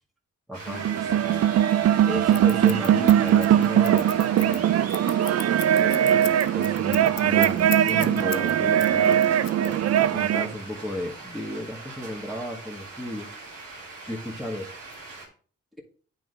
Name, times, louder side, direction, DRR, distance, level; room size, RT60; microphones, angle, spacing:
voice 1, 0.5-1.5 2.0-4.8 5.8-13.3 13.8-14.7, left 1 dB, ahead, -1 dB, 1.9 m, -35 dB
sound 1, 0.5-15.3, right 3 dB, 85° right, 2.0 m, -42 dB
sound 2, 0.7-10.5, right 10 dB, 50° right, 0.4 m, -21 dB
Scissors, 2.3-8.5 8.8-10.1, left 16 dB, 80° left, 0.5 m, -36 dB
9.2 x 4.0 x 3.9 m, 0.43 s
supercardioid pair, 40°, 32 cm